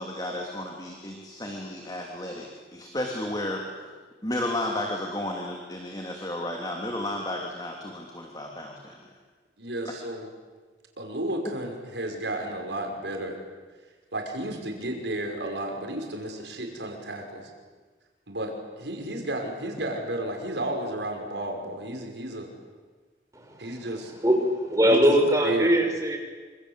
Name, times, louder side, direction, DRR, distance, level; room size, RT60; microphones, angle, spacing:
voice 1, 0.0-3.6 4.2-9.0, left 1 dB, 20° left, 1 dB, 3.0 m, -33 dB
voice 2, 9.6-10.3 11.0-13.4 14.1-17.5 18.3-22.5 23.6-24.1 24.9-25.1 25.4-25.7, right 1 dB, 80° right, 3 dB, 5.7 m, -32 dB
voice 3, 24.2-26.2, equal, 20° right, 2 dB, 5.6 m, -21 dB
27.0 x 26.5 x 8.3 m, 1.4 s
head